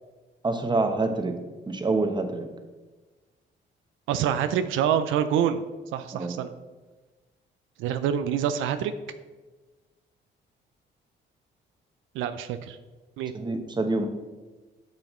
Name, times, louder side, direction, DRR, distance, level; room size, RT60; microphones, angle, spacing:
voice 1, 0.4-1.3 1.7-2.4 6.1-6.3 13.3-14.1, right 3 dB, 20° right, 6 dB, 0.9 m, -26 dB
voice 2, 4.1-5.6 5.9-6.5 7.8-8.9 12.1-12.8 13.2-13.3, right 9 dB, 90° right, 10 dB, 0.4 m, -26 dB
8.9 x 5.7 x 3.1 m, 1.3 s
cardioid pair, 90°, 20 cm